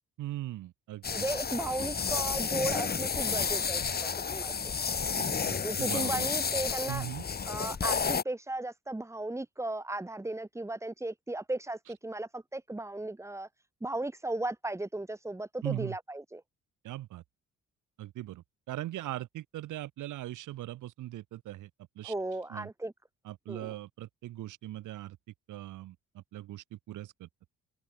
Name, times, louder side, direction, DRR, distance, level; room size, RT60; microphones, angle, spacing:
voice 1, 0.2-1.3 5.2-6.3 6.9-7.2 15.6-16.0 16.8-17.2 18.0-21.7 22.0-22.1 22.5-22.7 23.2-25.2 25.5-27.3, right 15 dB, 85° right, 3.4 m, -40 dB
sound 1, 1.0-8.2, left 6 dB, 30° left, 1.5 m, -31 dB
voice 2, 1.1-4.7 5.6-7.0 7.4-13.5 13.8-16.4 22.0-22.9 23.5-23.7, right 2 dB, 10° right, 1.3 m, -36 dB
open air
cardioid pair, 90°, 30 cm